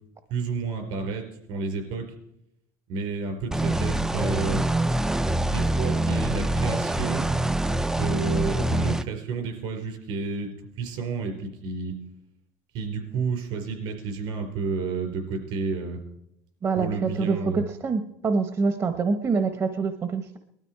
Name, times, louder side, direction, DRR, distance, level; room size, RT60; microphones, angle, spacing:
voice 1, 0.3-2.1 2.9-4.6 5.5-7.3 8.0-10.5 10.8-11.9 12.7-16.0 16.8-17.6, right 4 dB, 70° right, 4 dB, 4.7 m, -30 dB
sound 1, 3.5-9.0, right 1 dB, 5° right, 0.5 m, -25 dB
voice 2, 16.6-20.4, right 4 dB, 35° right, 8 dB, 1.0 m, -26 dB
19.5 x 12.5 x 4.7 m, 0.80 s
supercardioid pair, 100°, 9 cm